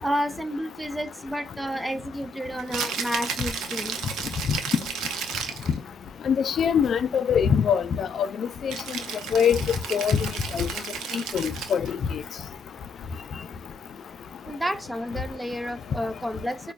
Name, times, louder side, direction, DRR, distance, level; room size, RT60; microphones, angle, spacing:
voice 1, 0.0-4.0 9.0-9.3 14.5-16.7, equal, 10° right, 0.5 m, -31 dB
Rattle (instrument), 2.6-5.8 8.7-11.9, right 6 dB, 80° right, 0.7 m, -33 dB
voice 2, 6.3-8.3 8.6-8.7 9.3-9.6 9.9-10.2 10.5-10.7 11.1-12.0, left 7 dB, 55° left, 0.3 m, -22 dB
4.9 x 2.2 x 2.3 m
cardioid pair, 90°, 0 cm